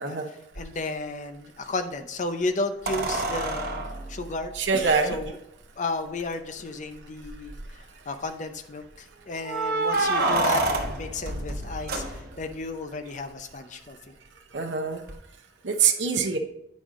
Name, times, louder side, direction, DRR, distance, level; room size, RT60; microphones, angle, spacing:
voice 1, 0.0-4.5 5.0-5.4 5.8-7.6 8.1-14.0, left 2 dB, 45° left, 8 dB, 0.6 m, -33 dB
sound 1, 0.6-0.7 2.9-5.2 6.2-6.3 6.6-6.7 7.2-7.7 9.4-12.6 15.1-15.2, right 2 dB, 55° right, 1.0 m, -28 dB
voice 2, 4.6-5.2 14.5-15.0 15.6-16.4, right 5 dB, 90° right, 4 dB, 0.7 m, -24 dB
8.9 x 5.3 x 3.7 m, 0.80 s
head